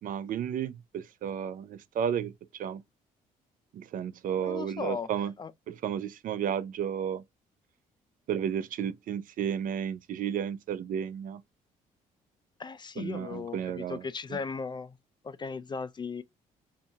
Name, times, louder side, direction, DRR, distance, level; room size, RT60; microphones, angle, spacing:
voice 1, 0.0-2.8 3.7-5.3 5.7-7.2 8.3-11.4 13.0-14.0 14.3-14.4, right 8 dB, 60° right, 0.4 m, -33 dB
voice 2, 4.4-5.1 5.4-5.5 12.6-15.0 15.2-16.2, left 5 dB, 30° left, 0.3 m, -37 dB
2.7 x 2.4 x 2.7 m
supercardioid pair, 65°, 16 cm